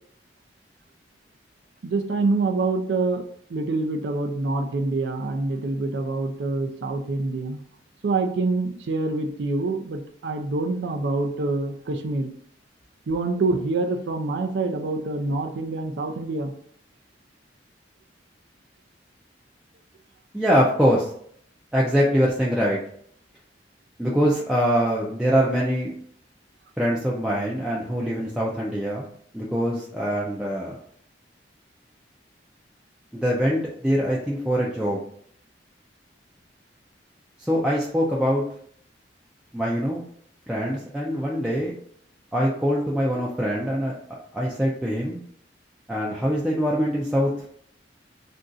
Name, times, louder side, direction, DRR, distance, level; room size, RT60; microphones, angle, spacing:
voice 1, 1.8-3.2 3.5-7.6 8.0-12.3 13.1-16.5 24.2-24.3, right 3 dB, 65° right, 5 dB, 0.4 m, -26 dB
voice 2, 20.3-21.1 21.7-22.8 24.0-25.9 26.8-29.1 29.3-30.8 33.1-35.0 37.4-38.4 39.5-40.0 40.5-41.7 42.3-44.0 44.3-45.2 45.9-47.3, equal, 5° right, -5 dB, 0.4 m, -23 dB
2.6 x 2.3 x 3.8 m, 0.62 s
head